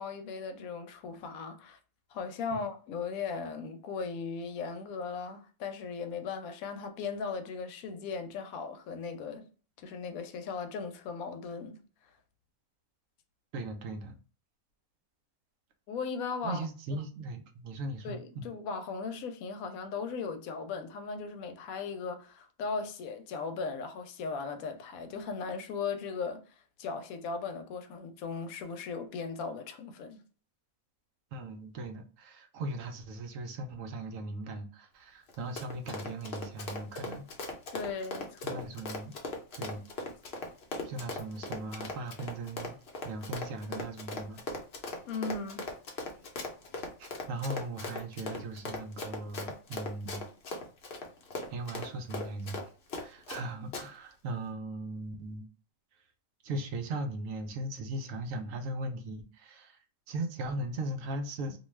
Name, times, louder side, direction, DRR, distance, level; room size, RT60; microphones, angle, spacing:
voice 1, 0.0-1.8 2.1-9.5 9.8-11.8 15.9-16.6 16.9-17.0 18.0-26.4 26.8-30.2 37.7-38.6 45.1-45.6, left 5 dB, 90° left, 1.0 m, -37 dB
voice 2, 13.5-14.2 16.4-18.5 31.3-37.3 38.4-39.1 39.5-39.8 40.8-42.8 43.0-44.4 47.0-50.3 51.5-52.7 53.0-55.5 56.4-59.8 60.1-61.6, right 2 dB, 70° right, 0.9 m, -38 dB
Run, 35.3-53.4 53.7-53.8, left 3 dB, 55° left, 0.8 m, -39 dB
2.6 x 2.3 x 3.1 m
omnidirectional pair, 1.4 m